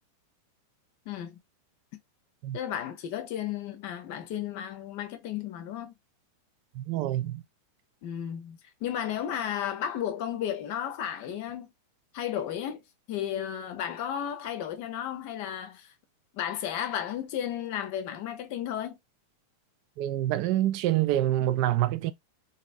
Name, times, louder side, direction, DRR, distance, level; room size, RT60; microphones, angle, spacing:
voice 1, 1.1-1.4 2.5-5.9 8.0-11.7 12.1-12.8 13.1-15.9 16.3-19.0, left 10 dB, 45° left, 0.6 m, -33 dB
voice 2, 6.7-7.4 20.0-22.1, right 13 dB, 45° right, 0.3 m, -26 dB
3.1 x 2.6 x 2.5 m
figure-of-eight pair, 90°, 0 cm